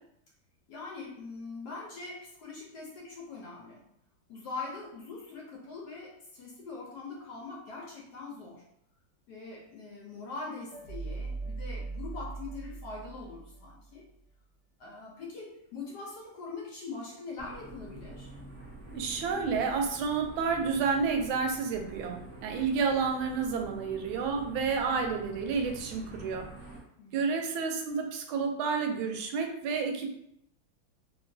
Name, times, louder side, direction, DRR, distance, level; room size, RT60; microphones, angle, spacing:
voice 1, 0.7-3.8 4.3-8.6 9.3-14.0 14.8-18.3 23.7-23.9 27.0-27.4, left 3 dB, 70° left, -2 dB, 1.1 m, -42 dB
sound 1, 10.7-13.9, right 3 dB, 45° left, 0.4 m, -40 dB
sound 2, 17.4-26.8, right 2 dB, 40° right, 0.5 m, -47 dB
voice 2, 18.9-26.5 27.1-30.1, right 5 dB, 85° right, 4 dB, 1.4 m, -30 dB
3.0 x 2.9 x 2.6 m, 0.74 s
omnidirectional pair, 2.1 m